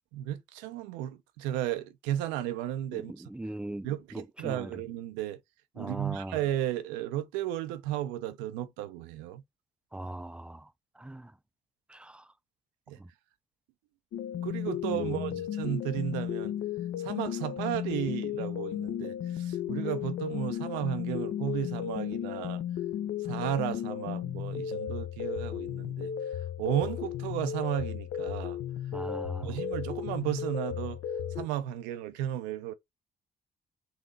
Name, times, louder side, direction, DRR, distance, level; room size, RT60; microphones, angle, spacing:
voice 1, 0.1-3.1 3.8-5.4 5.7-9.4 12.9-13.0 14.4-16.5 17.0-22.6 23.2-26.1 26.6-28.6 29.4-31.0 31.4-32.7, right 12 dB, 85° right, 0.5 m, -34 dB
voice 2, 2.9-4.8 5.8-6.4 9.9-10.7 11.0-11.3 11.9-12.3 13.0-13.1 14.9-15.2 28.9-29.6, right 1 dB, 5° right, 0.3 m, -40 dB
sound 1, 14.1-31.5, left 10 dB, 70° left, 0.5 m, -34 dB
3.9 x 2.8 x 3.8 m
hypercardioid pair, 50°, 18 cm